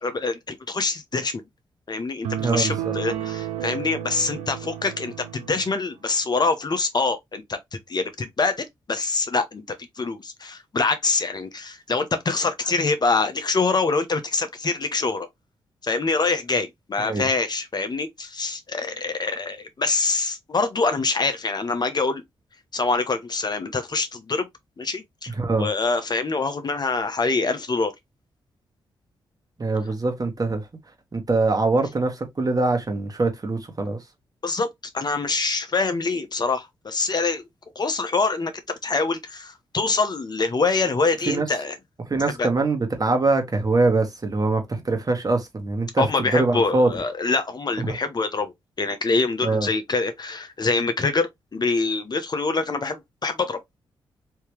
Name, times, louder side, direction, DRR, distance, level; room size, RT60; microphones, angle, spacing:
voice 1, 0.0-1.4 1.9-7.6 7.9-15.3 15.8-22.2 22.7-24.5 24.8-27.9 34.4-34.7 34.9-37.4 37.8-41.8 42.4-42.5 46.0-53.8, left 3 dB, 40° left, 0.9 m, -25 dB
sound 1, 2.2-5.8, right 11 dB, 85° right, 0.5 m, -31 dB
voice 2, 2.4-2.9 17.0-17.3 25.4-25.7 29.6-30.7 31.1-34.0 41.3-41.5 42.1-46.9 47.8-48.0 49.4-49.7, right 3 dB, 35° right, 1.4 m, -23 dB
3.4 x 2.8 x 3.2 m
hypercardioid pair, 40°, 10 cm